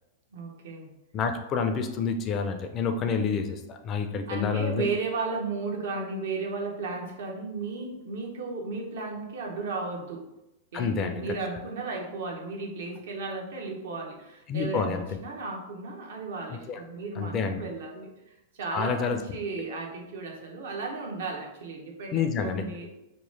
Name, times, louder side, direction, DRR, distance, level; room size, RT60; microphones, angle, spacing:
voice 1, 0.3-0.9 4.3-10.2 10.7-22.9, right 3 dB, 75° right, 0 dB, 0.7 m, -34 dB
voice 2, 1.1-4.9 10.7-11.4 14.5-15.2 16.5-16.8 17.2-17.6 18.7-19.2 22.1-22.7, left 5 dB, 35° left, 6 dB, 0.4 m, -28 dB
3.0 x 2.1 x 3.1 m, 0.91 s
hypercardioid pair, 120°, 0 cm